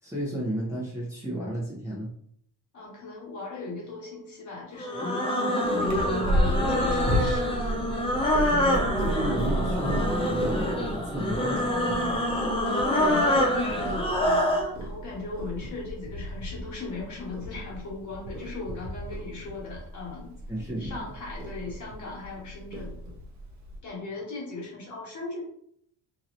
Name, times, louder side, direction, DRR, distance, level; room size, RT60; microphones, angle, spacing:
voice 1, 0.0-2.1 9.0-12.2 20.5-21.0, right 1 dB, 5° right, -8 dB, 0.9 m, -33 dB
voice 2, 2.7-5.3 5.6-7.6 9.0-9.4 12.7-20.3 20.8-23.0 23.8-25.4, left 3 dB, 45° left, -4 dB, 1.5 m, -38 dB
sound 1, 4.8-14.7, equal, 15° left, 0.4 m, -26 dB
Purr, 5.8-23.8, equal, 45° right, 0.8 m, -33 dB
2.9 x 2.8 x 2.6 m, 0.65 s
cardioid pair, 140°, 41 cm